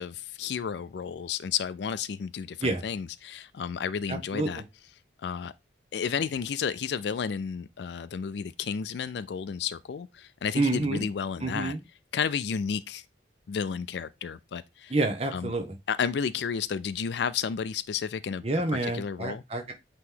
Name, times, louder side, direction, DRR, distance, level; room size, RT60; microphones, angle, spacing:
voice 1, 0.0-4.6 5.2-5.5 5.9-11.8 12.1-13.0 13.5-14.9 15.3-15.5 15.9-18.4 18.8-19.4, left 7 dB, 65° left, 0.4 m, -32 dB
voice 2, 4.1-4.6 10.6-11.1 11.4-11.8 14.9-15.8 18.4-19.7, right 2 dB, 30° right, 0.9 m, -28 dB
8.5 x 3.0 x 3.8 m
head